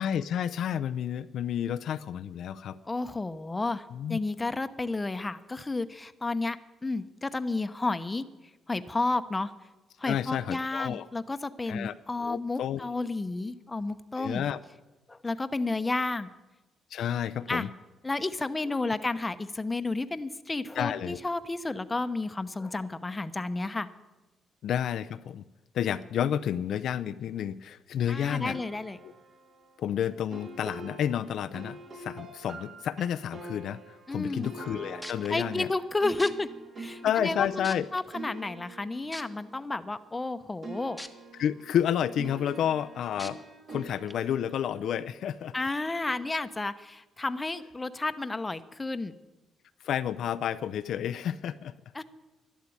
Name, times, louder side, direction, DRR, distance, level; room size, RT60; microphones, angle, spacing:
voice 1, 0.0-2.8 3.9-4.2 10.0-11.1 11.7-12.9 14.2-14.6 16.9-17.7 20.8-21.2 24.6-25.4 25.7-28.6 29.0-29.1 29.8-35.7 37.0-37.9 41.4-43.4 43.7-45.5 49.8-51.7, left 9 dB, 70° left, 12 dB, 0.5 m, -30 dB
voice 2, 2.9-6.6 6.8-8.2 8.7-9.5 10.0-14.4 15.1-16.3 17.5-17.7 18.0-23.9 28.1-29.0 34.1-34.5 35.3-36.5 36.8-41.0 45.5-49.1 51.9-52.0, left 3 dB, 20° left, 11 dB, 0.9 m, -31 dB
sound 1, 28.3-40.3 40.6-45.8, right 2 dB, 50° right, 2.5 m, -46 dB
sound 2, 34.7-34.8 35.0-35.3 36.2-36.3 37.1-37.2 37.6-38.0 39.1-39.2 41.0-41.1 41.6-41.7 43.2-43.3 44.1-44.2, equal, ahead, 1.2 m, -40 dB
12.0 x 11.5 x 8.7 m, 1.1 s
cardioid pair, 90°, 0 cm